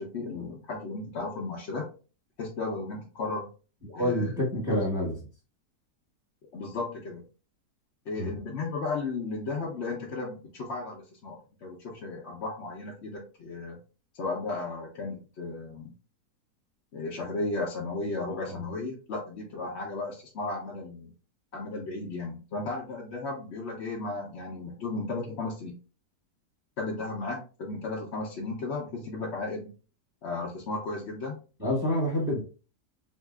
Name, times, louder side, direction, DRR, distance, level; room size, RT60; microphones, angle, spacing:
voice 1, 0.0-1.8 2.4-3.5 3.9-4.4 6.5-7.2 8.1-13.8 14.1-15.9 16.9-21.1 21.5-25.7 26.8-29.7 30.2-31.4, left 3 dB, 55° left, -2 dB, 0.8 m, -35 dB
voice 2, 3.9-5.2 8.1-8.3 18.3-18.6 31.6-32.4, left 1 dB, 15° right, -6 dB, 1.1 m, -28 dB
3.9 x 2.6 x 2.4 m, 0.36 s
omnidirectional pair, 1.7 m